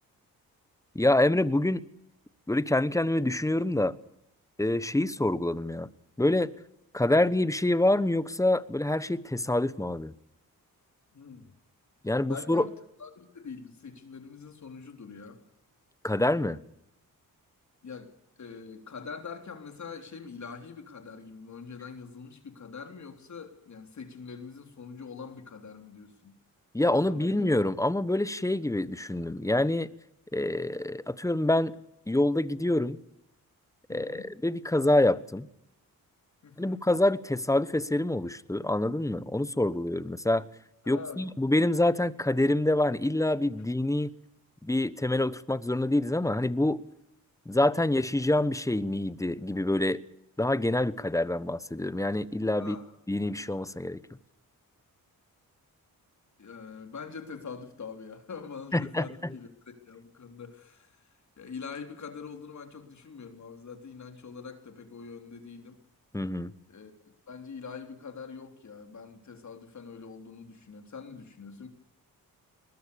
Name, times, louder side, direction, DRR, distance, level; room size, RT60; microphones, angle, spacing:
voice 1, 0.9-1.8 2.5-4.0 4.6-5.9 6.2-6.5 6.9-10.1 12.0-12.7 16.0-16.6 26.7-29.9 30.3-31.7 32.1-33.0 33.9-35.5 36.6-40.5 40.9-44.1 44.6-46.8 47.5-50.0 50.4-52.8 53.1-54.0 58.7-59.1 66.1-66.5, left 1 dB, 10° left, 1.0 m, -26 dB
voice 2, 11.1-11.5 12.2-12.7 13.0-15.4 17.8-18.1 18.4-26.4 26.8-27.5 33.9-34.3 36.4-36.9 40.8-41.3 52.6-52.9 56.4-61.1 61.4-65.8 66.7-66.9 67.3-71.7, left 5 dB, 50° left, 3.6 m, -44 dB
22.0 x 20.5 x 7.0 m
cardioid pair, 95°, 36 cm